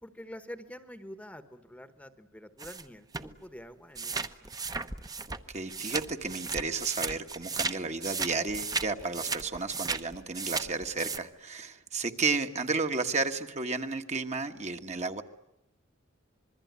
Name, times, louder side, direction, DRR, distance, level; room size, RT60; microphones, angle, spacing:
voice 1, 0.0-4.6, equal, 5° left, 10 dB, 1.2 m, -47 dB
sound 1, 2.6-2.8 3.1-3.3 4.0-7.7 8.0-11.2, right 4 dB, 20° right, 1.0 m, -35 dB
voice 2, 5.3-15.2, right 4 dB, 35° right, 6 dB, 1.4 m, -32 dB
26.5 x 21.5 x 9.5 m, 0.87 s
head